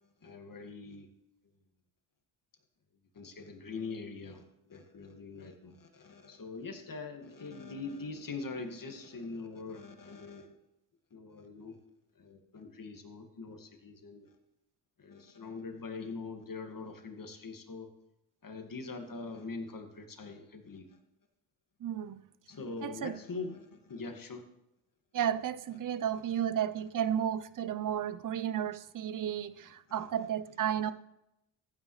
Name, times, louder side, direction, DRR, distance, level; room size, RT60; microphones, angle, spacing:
voice 1, 0.2-1.1 3.1-10.6 11.1-11.8 12.2-14.3 15.0-17.9 18.4-20.9 22.5-24.5 29.9-30.1, left 4 dB, 40° left, 2.1 m, -43 dB
voice 2, 21.8-22.2 22.8-23.2 25.1-30.9, right 9 dB, 40° right, 0.7 m, -33 dB
15.0 x 9.3 x 3.2 m
supercardioid pair, 50°, 50 cm